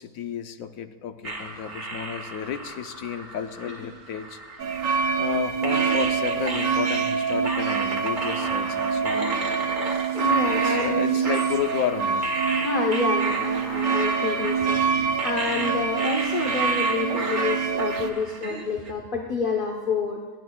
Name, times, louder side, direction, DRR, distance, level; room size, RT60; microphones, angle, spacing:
voice 1, 0.0-4.4 5.2-9.6 10.5-12.3, left 8 dB, 90° left, 9 dB, 1.1 m, -32 dB
sound 1, 1.2-5.3 5.6-18.9, right 2 dB, 35° right, 1.6 m, -33 dB
sound 2, 4.6-18.1, right 6 dB, 75° right, 1.1 m, -25 dB
voice 2, 10.1-11.1 12.6-20.2, left 4 dB, 45° left, 0 dB, 1.1 m, -28 dB
26.5 x 10.5 x 2.3 m, 1.4 s
omnidirectional pair, 1.4 m